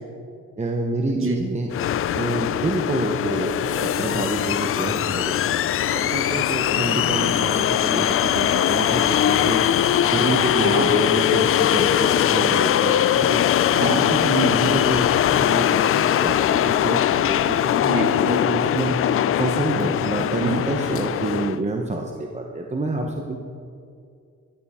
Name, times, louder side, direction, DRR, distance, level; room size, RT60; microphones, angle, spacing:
voice 1, 0.6-1.7 2.1-5.5 5.9-9.6 10.1-13.4 14.1-14.3 14.6-17.9 18.2-19.0 19.4-23.4, right 2 dB, 25° right, 2 dB, 1.0 m, -28 dB
sound 1, 1.7-21.6, left 11 dB, 45° left, 0.4 m, -21 dB
voice 2, 7.2-7.7 10.6-10.9 13.7-14.6 17.7-18.6 20.4-20.6, right 2 dB, 45° right, 2 dB, 2.1 m, -26 dB
13.0 x 11.5 x 3.7 m, 2.4 s
cardioid pair, 90°, 30 cm